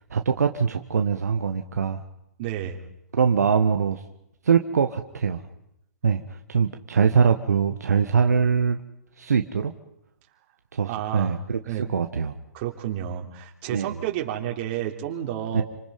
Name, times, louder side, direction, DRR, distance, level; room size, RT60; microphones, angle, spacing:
voice 1, 0.1-2.0 3.1-4.0 4.4-5.4 6.0-8.8 9.2-9.7 10.7-12.3 13.7-14.0 15.5-15.6, right 6 dB, 70° right, 5 dB, 1.6 m, -23 dB
voice 2, 2.4-2.8 10.9-11.4 11.6-11.8 12.5-15.6, right 11 dB, 40° right, 3 dB, 3.8 m, -30 dB
28.5 x 26.5 x 5.4 m, 0.79 s
figure-of-eight pair, 125°, 9 cm